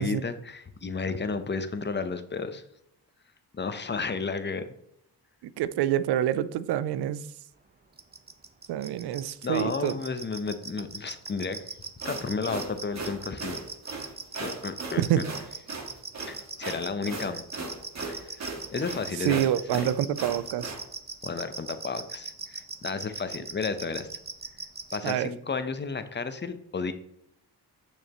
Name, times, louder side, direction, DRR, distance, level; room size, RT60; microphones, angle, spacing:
voice 1, 0.0-2.6 3.5-4.7 9.4-11.6 12.0-13.6 14.4-15.2 16.3-17.4 18.1-18.4 18.7-19.4 21.2-24.1 24.9-26.9, left 4 dB, 25° left, 0.8 m, -32 dB
voice 2, 5.4-7.3 8.7-9.9 15.0-15.3 19.2-20.8 25.0-25.3, right 11 dB, 75° right, 0.5 m, -27 dB
sound 1, 8.0-25.1, right 4 dB, 25° right, 0.9 m, -38 dB
sound 2, 11.8-20.8, right 3 dB, 40° right, 1.6 m, -38 dB
6.6 x 6.3 x 3.0 m
supercardioid pair, 55°, 40 cm